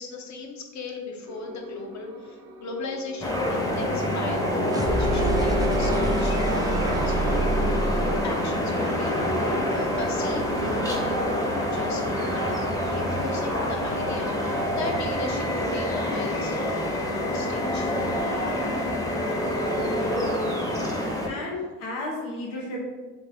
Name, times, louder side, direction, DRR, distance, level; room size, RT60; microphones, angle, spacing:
voice 1, 0.0-4.4 4.9-17.9, left 3 dB, 45° left, 2 dB, 0.8 m, -37 dB
sound 1, 1.3-19.2, right 1 dB, 75° right, 0.7 m, -42 dB
sound 2, 3.2-21.3, left 1 dB, 10° left, 0.7 m, -26 dB
sound 3, 4.6-10.5, right 3 dB, 10° right, 0.3 m, -29 dB
voice 2, 19.7-20.6 21.3-22.8, left 2 dB, 90° left, -2 dB, 0.8 m, -34 dB
2.9 x 2.6 x 3.8 m, 1.3 s
supercardioid pair, 70°, 38 cm